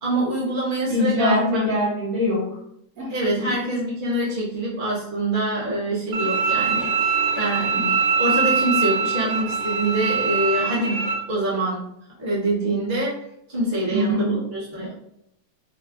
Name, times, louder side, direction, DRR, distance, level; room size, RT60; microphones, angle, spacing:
voice 1, 0.0-1.6 3.1-11.0 11.3-11.9 12.2-13.2 13.5-14.9, right 1 dB, 35° right, -6 dB, 0.9 m, -25 dB
voice 2, 0.9-2.6 3.0-3.5 7.7-7.9 13.9-14.3, left 1 dB, 60° right, -7 dB, 0.9 m, -23 dB
Bowed string instrument, 6.1-11.1, right 5 dB, 80° right, 1.4 m, -23 dB
3.6 x 2.1 x 2.3 m, 0.76 s
omnidirectional pair, 2.1 m